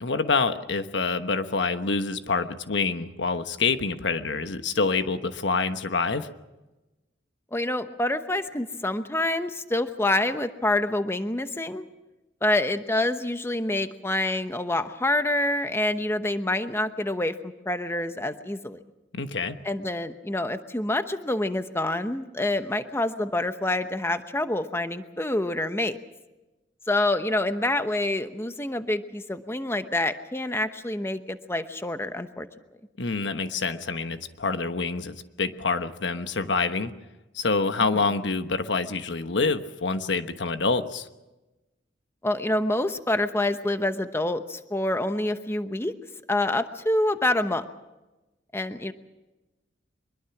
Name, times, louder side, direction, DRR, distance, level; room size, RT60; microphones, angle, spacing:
voice 1, 0.0-6.3 19.1-19.6 33.0-36.9 37.3-41.1, left 4 dB, 80° left, 9 dB, 1.2 m, -26 dB
voice 2, 7.5-11.8 12.4-18.8 19.6-26.0 26.9-32.5 37.9-38.0 42.2-45.9 46.3-47.6 48.5-48.9, left 1 dB, 15° left, 9 dB, 1.0 m, -27 dB
24.0 x 22.0 x 6.0 m, 1.1 s
head